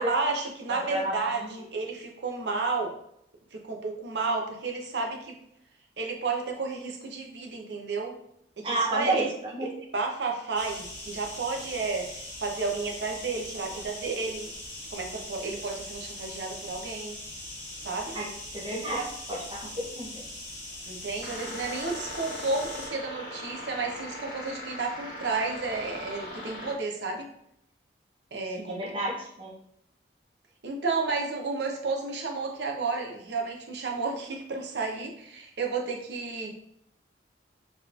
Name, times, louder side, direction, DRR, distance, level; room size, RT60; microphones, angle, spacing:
voice 1, 0.0-2.9 3.5-5.4 6.0-8.2 8.6-9.3 9.6-14.5 14.9-17.2 17.8-18.2 19.0-19.1 20.9-27.3 28.3-28.9 30.6-36.5, right 4 dB, 70° right, 1 dB, 0.6 m, -32 dB
voice 2, 0.7-1.6 8.6-9.3 9.5-9.7 18.1-20.2 28.6-29.5, right 1 dB, 30° right, -3 dB, 0.7 m, -31 dB
sound 1, 10.5-22.9, left 1 dB, 70° left, 1.4 m, -41 dB
sound 2, 21.2-26.7, left 1 dB, 50° left, 1.1 m, -40 dB
3.8 x 3.0 x 2.4 m, 0.73 s
head